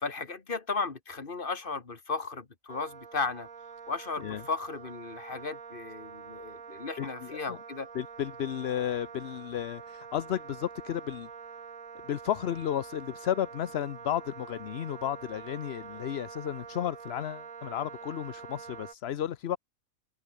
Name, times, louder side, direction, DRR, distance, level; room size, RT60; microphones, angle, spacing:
voice 1, 0.0-3.5 3.9-7.9, left 4 dB, 40° left, 2.0 m, -35 dB
Wind instrument woodwind instrument, 2.7-18.9, right 6 dB, 75° right, 2.2 m, -46 dB
voice 2, 7.0-7.6 7.9-11.3 12.0-19.6, left 10 dB, 55° left, 0.9 m, -33 dB
omnidirectional pair, 1.4 m